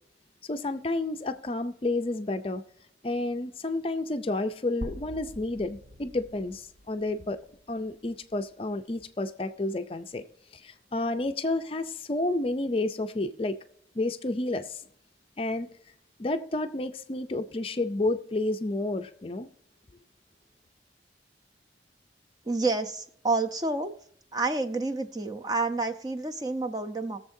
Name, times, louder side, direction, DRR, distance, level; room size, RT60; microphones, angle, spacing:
voice 1, 0.4-2.6 3.0-7.4 7.7-10.2 10.5-13.6 13.9-14.8 15.4-15.7 16.2-19.5, left 2 dB, 30° left, 0.5 m, -30 dB
sound 1, 4.8-8.7, equal, 60° right, 0.9 m, -45 dB
voice 2, 22.4-23.9 24.3-27.2, right 3 dB, 20° right, 0.6 m, -29 dB
21.0 x 7.1 x 2.7 m
head